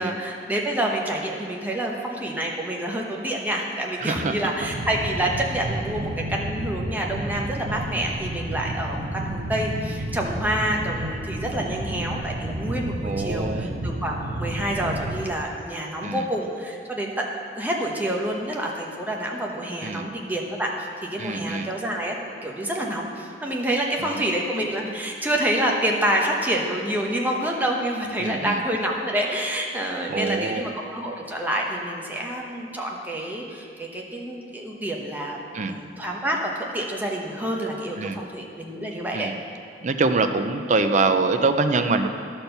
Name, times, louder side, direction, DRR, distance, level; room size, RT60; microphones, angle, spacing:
voice 1, 0.0-17.2 17.6-22.2 22.4-35.4 35.7-39.3, right 1 dB, 10° right, -1 dB, 1.0 m, -27 dB
voice 2, 4.0-4.4 4.6-4.7 13.0-13.8 16.0-16.3 19.8-20.1 21.2-21.7 24.0-24.2 28.2-28.6 30.1-30.6 35.5-35.8 38.0-38.2 39.1-39.3 39.8-42.1, right 3 dB, 45° right, 8 dB, 0.5 m, -24 dB
sound 1, 4.6-15.3, right 1 dB, 60° right, 1.0 m, -31 dB
11.5 x 4.4 x 6.7 m, 2.3 s
head